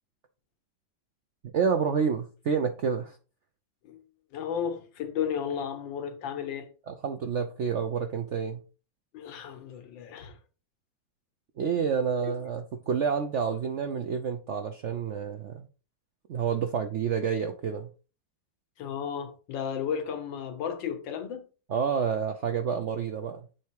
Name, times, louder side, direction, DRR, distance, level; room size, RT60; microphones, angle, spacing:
voice 1, 1.5-3.2 6.9-8.6 11.6-15.7 16.3-17.9 21.7-23.4, right 6 dB, 70° right, 0.6 m, -29 dB
voice 2, 4.3-6.7 9.1-10.4 12.2-12.3 18.8-21.5, left 8 dB, 85° left, 1.7 m, -33 dB
7.5 x 3.5 x 4.6 m
omnidirectional pair, 2.0 m